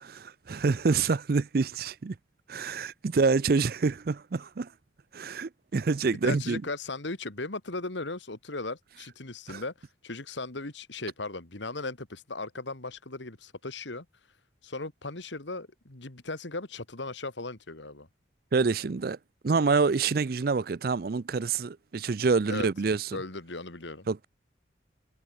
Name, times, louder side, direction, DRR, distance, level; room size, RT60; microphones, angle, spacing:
voice 1, 0.0-2.2 2.5-4.7 5.1-6.6 9.5-9.6 18.5-19.2 19.4-23.1 24.1-24.2, right 4 dB, 50° right, 0.5 m, -27 dB
voice 2, 6.1-14.1 14.6-18.1 22.5-22.7 23.1-24.1, left 3 dB, 75° left, 2.2 m, -37 dB
head